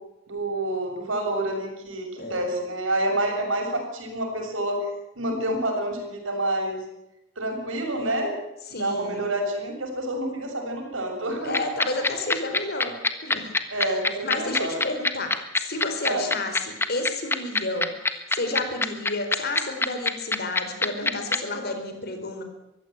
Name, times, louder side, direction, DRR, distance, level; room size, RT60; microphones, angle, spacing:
voice 1, 0.3-4.8 5.2-6.8 7.4-8.4 8.7-11.6 12.0-12.2 13.7-14.8 16.0-16.3, right 1 dB, 85° right, 3 dB, 7.0 m, -28 dB
voice 2, 8.7-9.2 11.4-13.7 14.2-17.9 18.3-22.4, left 2 dB, 55° left, 6 dB, 4.5 m, -31 dB
sound 1, 11.5-21.4, left 3 dB, 10° left, 1.4 m, -22 dB
23.5 x 15.0 x 9.0 m, 0.90 s
head